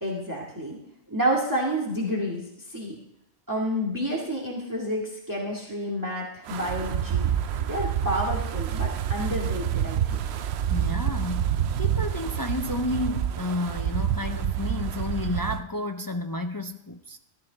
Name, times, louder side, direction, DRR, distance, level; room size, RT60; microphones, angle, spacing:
voice 1, 0.0-0.8 1.1-3.0 3.5-7.3 7.6-10.2, equal, 15° right, -2 dB, 2.0 m, -29 dB
Wind, 6.5-15.6, right 9 dB, 75° right, 0.9 m, -28 dB
voice 2, 10.7-17.2, left 2 dB, 30° left, 6 dB, 0.4 m, -31 dB
14.0 x 12.0 x 4.0 m, 0.84 s
omnidirectional pair, 1.1 m